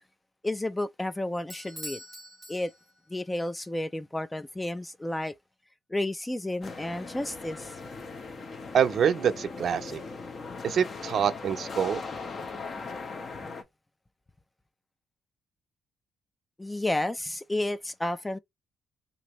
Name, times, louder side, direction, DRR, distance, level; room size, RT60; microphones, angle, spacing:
voice 1, 0.4-2.0 2.5-2.7 3.1-5.4 5.9-7.7 16.6-18.4, left 1 dB, 10° left, 0.3 m, -31 dB
Bell / Doorbell, 1.5-3.2, equal, 5° right, 0.8 m, -44 dB
sound 1, 6.6-13.6, left 4 dB, 45° left, 0.7 m, -39 dB
voice 2, 8.7-10.0 10.6-12.0, right 8 dB, 60° right, 0.5 m, -25 dB
3.0 x 2.6 x 2.9 m
cardioid pair, 90°, 0 cm